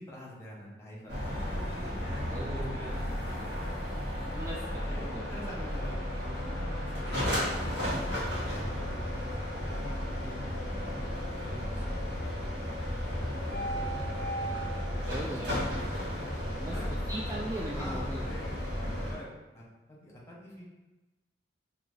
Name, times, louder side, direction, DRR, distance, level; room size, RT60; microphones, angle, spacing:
voice 1, 0.0-1.6 2.0-3.7 4.2-4.3 4.9-7.7 8.2-9.2 9.7-11.0 11.4-12.5 12.9-14.6 15.1-16.0 16.7-17.0 17.7-20.7, equal, 15° left, -6 dB, 1.2 m, -46 dB
sound 1, 1.1-19.1, equal, 70° right, 1.3 m, -34 dB
voice 2, 2.3-2.9 4.3-4.8 5.1-5.3 15.1-15.7 16.6-18.2, right 1 dB, 20° right, -3 dB, 0.3 m, -39 dB
5.5 x 2.8 x 2.7 m, 1.1 s
head